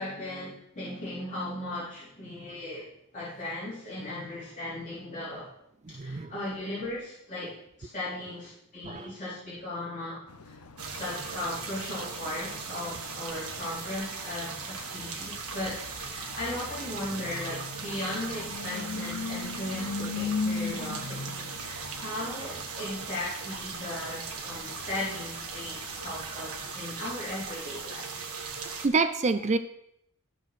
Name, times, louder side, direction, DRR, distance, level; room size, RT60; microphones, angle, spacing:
voice 1, 0.0-2.8 3.1-5.5 6.0-7.5 7.8-10.5 10.9-28.4, left 1 dB, 35° left, -10 dB, 3.9 m, -37 dB
voice 2, 6.0-6.3 8.8-9.1 28.8-29.6, right 3 dB, 30° right, 10 dB, 0.5 m, -26 dB
sound 1, 10.3-26.8, left 4 dB, 90° left, 0.9 m, -40 dB
sound 2, 10.8-28.9, right 5 dB, 75° right, 1.4 m, -39 dB
13.5 x 4.6 x 6.1 m, 0.76 s
head